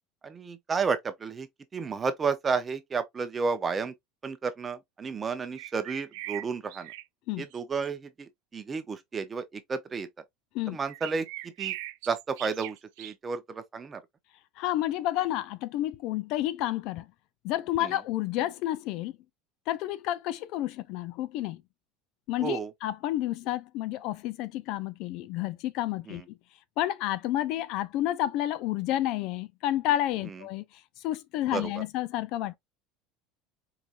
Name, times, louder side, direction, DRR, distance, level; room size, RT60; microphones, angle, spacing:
voice 1, 0.2-1.5 1.7-3.9 4.2-6.9 7.4-10.1 10.7-11.3 11.6-11.7 12.1-14.0 17.8-17.9 22.4-22.7 26.1-26.2 31.5-31.7, right 5 dB, 20° right, 0.7 m, -32 dB
sound 1, 5.5-7.0 7.4-7.9 10.8-13.1, right 17 dB, 85° right, 0.4 m, -40 dB
voice 2, 14.6-17.1 17.4-19.1 19.7-21.6 22.3-26.2 26.8-30.6 31.0-32.6, left 14 dB, 60° left, 0.4 m, -30 dB
4.8 x 2.8 x 2.5 m
cardioid pair, 150°, 0 cm